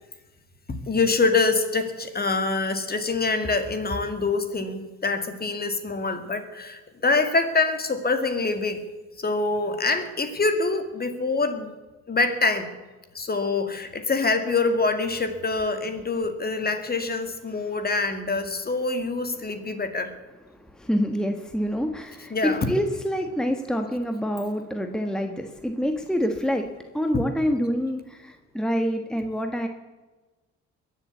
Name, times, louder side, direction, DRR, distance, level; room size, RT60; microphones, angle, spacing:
voice 1, 0.9-8.8 9.2-11.7 12.1-12.7 13.1-20.1 22.3-22.7, left 3 dB, 30° left, 8 dB, 2.1 m, -25 dB
voice 2, 20.8-29.7, equal, ahead, 5 dB, 1.3 m, -27 dB
22.0 x 7.4 x 8.3 m, 1.2 s
cardioid pair, 90°, 30 cm